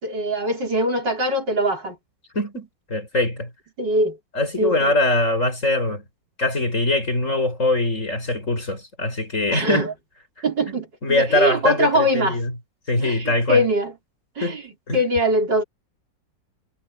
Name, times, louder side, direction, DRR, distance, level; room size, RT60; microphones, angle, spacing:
voice 1, 0.0-2.0 3.8-4.2 4.6-4.9 9.5-9.9 10.4-12.4 13.0-13.9 14.4-14.6 14.9-15.6, equal, 65° right, 5.6 m, -22 dB
voice 2, 2.3-3.5 4.3-6.0 6.4-9.9 11.0-12.5 12.9-13.6 14.4-14.6 14.9-15.0, left 2 dB, 40° left, 5.7 m, -22 dB
omnidirectional pair, 2.1 m